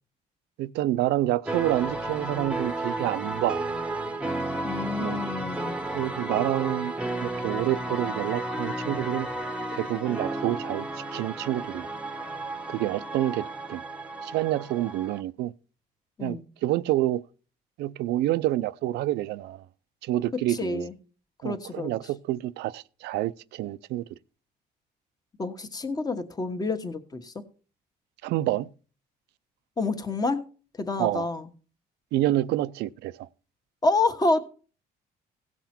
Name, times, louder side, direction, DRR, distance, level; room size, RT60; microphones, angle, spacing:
voice 1, 0.6-3.6 5.0-5.2 5.9-6.9 7.2-9.3 9.7-10.9 11.1-11.9 12.7-13.8 14.2-15.5 16.2-17.2 17.8-19.6 20.0-20.9 21.4-24.0 28.2-28.7 31.0-31.3 32.1-33.3, right 15 dB, 80° right, 0.5 m, -28 dB
sound 1, 1.4-15.2, right 2 dB, 5° right, 1.0 m, -33 dB
voice 2, 4.6-5.8 16.2-16.4 20.5-20.9 21.4-21.9 25.4-27.3 29.8-30.4 30.8-31.5 33.8-34.4, left 3 dB, 20° left, 1.4 m, -28 dB
17.0 x 6.0 x 4.4 m
cardioid pair, 110°, 17 cm